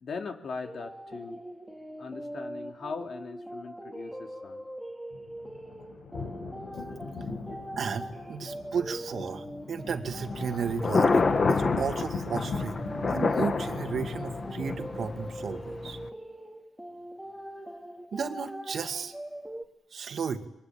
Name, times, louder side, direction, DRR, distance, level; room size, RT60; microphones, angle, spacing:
voice 1, 0.0-1.4 2.0-4.6, left 4 dB, 55° left, 4 dB, 3.1 m, -39 dB
sound 1, 0.6-19.7, right 1 dB, ahead, 2.5 m, -42 dB
sound 2, 5.1-15.5, left 4 dB, 75° left, 6.3 m, -38 dB
voice 2, 7.8-12.8 13.1-16.0 18.1-19.1 19.9-20.5, right 6 dB, 55° right, 7 dB, 2.2 m, -34 dB
Thunder, 10.1-16.1, left 4 dB, 35° left, 1.7 m, -29 dB
28.5 x 23.0 x 9.0 m, 0.83 s
cardioid pair, 105°, 0 cm